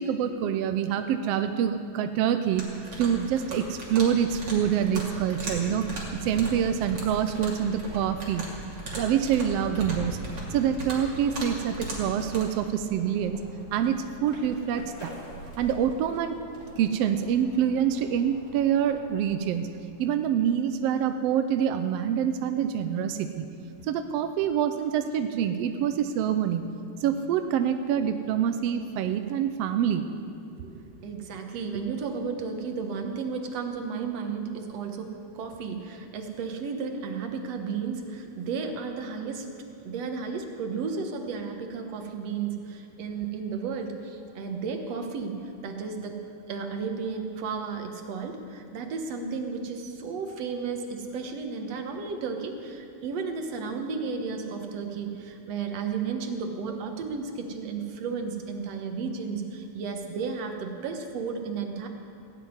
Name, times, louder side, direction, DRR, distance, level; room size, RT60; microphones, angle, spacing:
voice 1, 0.0-8.5 8.9-10.2 10.5-13.4 13.7-15.1 15.6-16.4 16.8-19.7 20.0-23.4 23.8-26.7 27.0-30.0, right 9 dB, 80° right, 8 dB, 1.5 m, -26 dB
sound 1, 2.6-12.4, right 1 dB, 35° right, 3.3 m, -38 dB
sound 2, 9.6-20.3, left 1 dB, 35° left, 4.8 m, -48 dB
voice 2, 30.6-39.5 39.8-46.2 46.5-61.9, right 5 dB, 65° right, 4 dB, 2.3 m, -33 dB
16.5 x 8.0 x 9.6 m, 2.5 s
omnidirectional pair, 3.4 m